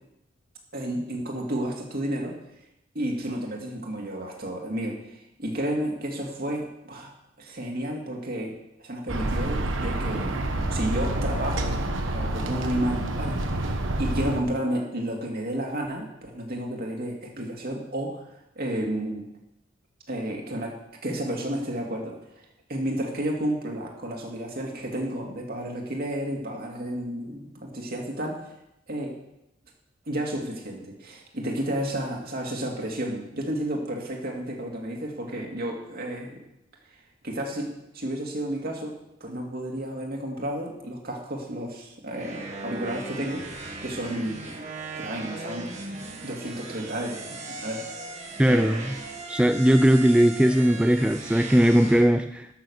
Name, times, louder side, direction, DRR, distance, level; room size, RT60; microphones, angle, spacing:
voice 1, 0.7-2.3 2.9-7.1 7.4-8.5 8.8-10.4 10.7-11.8 12.1-18.3 18.6-19.2 20.1-20.8 21.0-22.2 22.7-28.5 28.9-29.1 30.1-36.4 37.2-37.7 37.9-38.9 39.2-43.4 43.8-44.4 45.0-45.7 46.2-47.8 48.5-48.8, right 1 dB, 50° right, 0 dB, 2.5 m, -31 dB
sound 1, 9.1-14.4, right 1 dB, 90° right, 1.2 m, -28 dB
sound 2, 42.2-52.1, right 2 dB, 35° right, 1.8 m, -38 dB
voice 2, 48.4-48.9 49.3-52.5, equal, 5° right, 7 dB, 0.3 m, -19 dB
12.5 x 6.6 x 6.5 m, 0.85 s
head